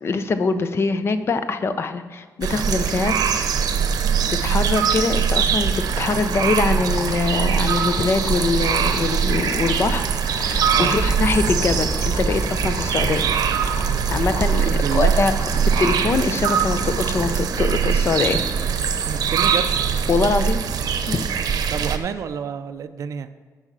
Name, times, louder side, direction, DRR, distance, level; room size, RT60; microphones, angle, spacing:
voice 1, 0.0-3.6 4.3-13.3 14.1-15.3 15.6-18.4 20.1-20.6 21.1-21.2, left 4 dB, 40° left, 10 dB, 0.6 m, -23 dB
sound 1, 2.4-22.0, right 7 dB, 85° right, 0.7 m, -22 dB
sound 2, 5.8-17.2, left 3 dB, 85° left, 1.3 m, -36 dB
sound 3, 10.0-18.7, right 1 dB, ahead, 0.8 m, -33 dB
voice 2, 14.6-15.1 19.1-19.7 21.7-23.3, right 7 dB, 55° right, 9 dB, 0.4 m, -29 dB
9.7 x 5.5 x 6.1 m, 1.5 s
wide cardioid pair, 165°, 6 cm